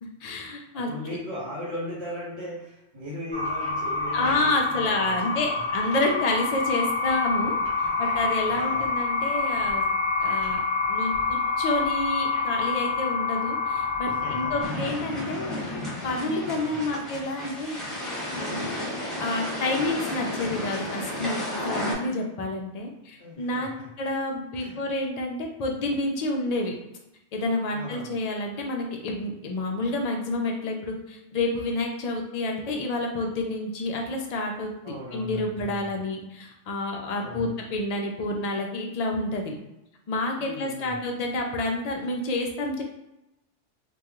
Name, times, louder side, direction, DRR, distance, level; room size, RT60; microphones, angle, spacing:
voice 1, 0.0-0.9 4.1-7.6 8.0-9.8 10.2-10.6 10.9-15.8 16.0-17.8 18.3-18.8 19.2-23.7 24.0-26.7 27.3-34.7 35.1-39.5 40.1-42.8, left 2 dB, 85° left, 1 dB, 0.3 m, -29 dB
voice 2, 0.7-5.7 7.8-8.0 8.4-8.9 14.0-14.7 15.1-15.4 16.4-17.0 23.2-23.9 24.5-24.8 27.7-28.2 34.8-36.1 37.2-37.6 40.4-41.0, left 1 dB, 60° right, -5 dB, 1.5 m, -38 dB
sound 1, 3.3-14.7, left 4 dB, 25° right, 1.3 m, -27 dB
sound 2, 14.6-21.9, left 1 dB, ahead, 0.9 m, -32 dB
2.9 x 2.3 x 3.6 m, 0.88 s
omnidirectional pair, 1.2 m